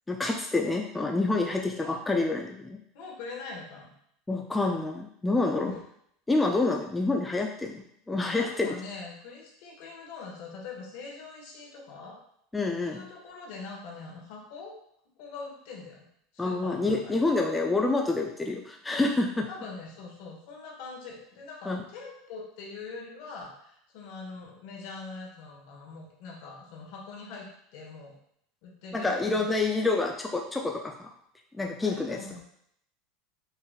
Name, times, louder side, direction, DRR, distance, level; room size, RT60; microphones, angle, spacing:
voice 1, 0.1-2.8 4.3-5.8 6.3-8.7 12.5-13.1 16.4-19.5 21.7-21.8 28.9-31.1 31.5-32.4, left 3 dB, 10° left, 1 dB, 0.3 m, -28 dB
voice 2, 2.9-3.9 5.5-5.8 6.8-6.9 8.2-12.2 12.9-14.7 15.2-16.0 16.3-17.2 19.5-28.1 28.6-29.5 31.8-32.4, left 4 dB, 70° left, -1 dB, 1.2 m, -43 dB
5.5 x 2.5 x 2.3 m, 0.71 s
supercardioid pair, 125°, 0 cm